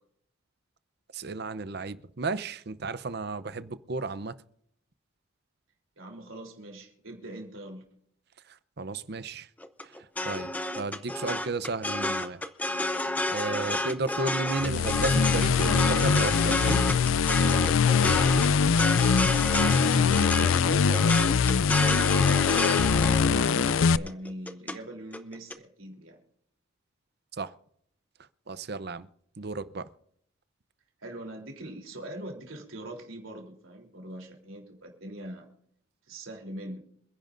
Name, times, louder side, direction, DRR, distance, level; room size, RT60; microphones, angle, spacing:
voice 1, 1.1-4.3 8.8-9.5 10.2-10.5 10.8-12.4 13.3-16.9 27.4-27.5 28.5-29.1 29.4-29.9, right 3 dB, 55° right, 0.7 m, -33 dB
voice 2, 6.0-7.8 19.9-26.2 31.0-35.5 36.1-36.8, right 1 dB, 85° right, 3.4 m, -42 dB
sound 1, 9.6-24.8 25.1-25.5, left 1 dB, 10° left, 0.7 m, -30 dB
sound 2, 14.6-24.0, left 6 dB, 80° left, 0.4 m, -23 dB
27.5 x 10.5 x 2.6 m
head